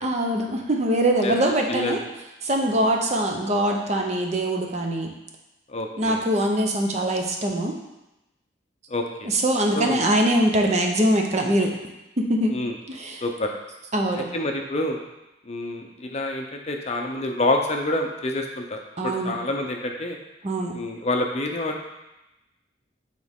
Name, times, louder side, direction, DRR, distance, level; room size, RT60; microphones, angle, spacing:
voice 1, 0.0-2.0 2.4-5.1 6.0-7.8 9.2-11.7 12.2-12.6 12.9-13.2 13.9-14.3 19.0-19.4 20.4-20.8, right 1 dB, 35° right, 2 dB, 0.7 m, -23 dB
voice 2, 1.7-2.0 2.8-2.9 5.7-6.2 8.9-9.3 9.7-10.1 12.5-12.7 13.2-13.5 14.3-15.0 15.5-20.2 20.7-21.8, left 2 dB, 35° left, 2 dB, 0.6 m, -27 dB
8.5 x 4.0 x 3.6 m, 0.97 s
head